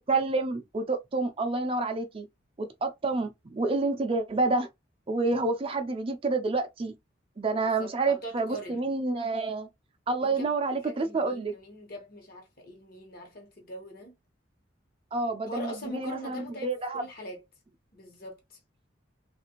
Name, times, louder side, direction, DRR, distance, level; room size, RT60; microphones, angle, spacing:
voice 1, 0.1-2.3 2.6-4.7 5.1-6.9 7.4-9.7 10.1-11.5 15.1-17.0, right 3 dB, 30° right, 0.4 m, -28 dB
voice 2, 7.6-8.9 10.2-10.5 10.8-14.1 15.5-17.4 17.9-18.6, equal, 55° left, 1.1 m, -42 dB
3.2 x 2.5 x 2.9 m
head